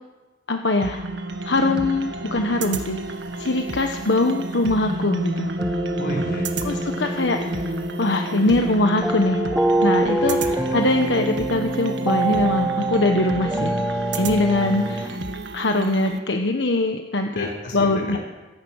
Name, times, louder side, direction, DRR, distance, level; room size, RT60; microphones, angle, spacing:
voice 1, 0.5-1.1 1.4-3.0 3.4-5.5 6.6-9.4 9.8-10.4 10.7-13.8 14.1-15.2 15.5-18.2, left 2 dB, 80° left, 4 dB, 1.3 m, -22 dB
sound 1, 0.8-16.2, right 2 dB, 85° right, 1.7 m, -31 dB
sound 2, 5.6-15.1, right 2 dB, 5° right, 1.4 m, -25 dB
voice 2, 6.0-6.8 10.2-10.8 17.3-18.2, right 1 dB, 55° left, 0 dB, 5.7 m, -33 dB
27.0 x 16.0 x 6.5 m, 1.2 s
head